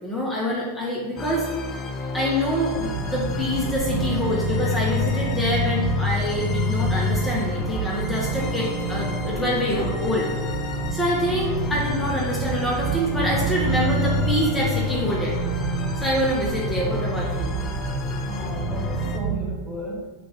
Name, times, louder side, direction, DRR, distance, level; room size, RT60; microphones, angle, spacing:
voice 1, 0.0-1.5 2.1-10.3 10.9-15.4 16.0-17.6, equal, 10° left, -4 dB, 0.7 m, -26 dB
sound 1, 1.2-19.2, left 6 dB, 30° left, 0.4 m, -30 dB
sound 2, 2.7-19.5, right 5 dB, 45° right, 0.8 m, -29 dB
sound 3, 8.3-18.3, equal, 5° right, 1.3 m, -45 dB
voice 2, 18.2-20.1, right 1 dB, 30° right, -3 dB, 1.4 m, -35 dB
3.8 x 2.5 x 4.7 m, 1.4 s
figure-of-eight pair, 90°, 0 cm